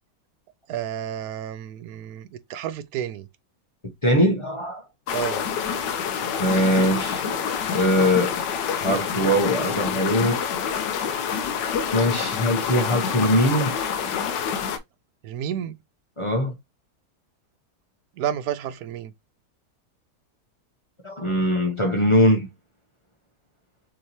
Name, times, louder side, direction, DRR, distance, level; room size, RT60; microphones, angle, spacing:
voice 1, 0.7-3.3 5.1-5.4 15.2-15.7 18.2-19.1, right 9 dB, 70° right, 1.0 m, -30 dB
voice 2, 4.0-4.8 6.4-7.3 7.7-8.4 8.8-10.5 11.9-13.8 16.2-16.5 21.0-22.5, equal, 45° left, 0.4 m, -21 dB
sound 1, 5.1-14.8, left 7 dB, 90° left, 1.3 m, -27 dB
6.4 x 3.0 x 2.7 m
omnidirectional pair, 1.8 m